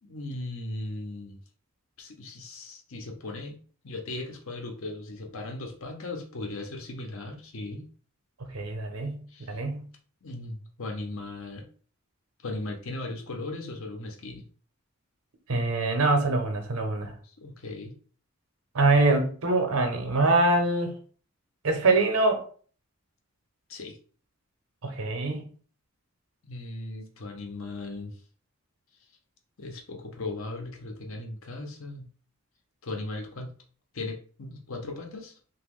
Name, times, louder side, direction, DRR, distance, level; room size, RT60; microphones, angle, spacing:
voice 1, 0.0-1.4 2.0-3.6 3.8-7.9 9.3-9.6 10.2-11.6 12.4-14.4 17.2-17.9 23.7-24.0 26.4-28.1 29.6-32.1 32.8-33.5 33.9-35.4, left 2 dB, 70° left, 3 dB, 0.7 m, -37 dB
voice 2, 8.5-9.9 15.5-17.2 18.7-20.9 21.6-22.4 24.8-25.4, right 2 dB, 90° right, 4 dB, 0.8 m, -24 dB
3.0 x 2.2 x 3.6 m, 0.43 s
head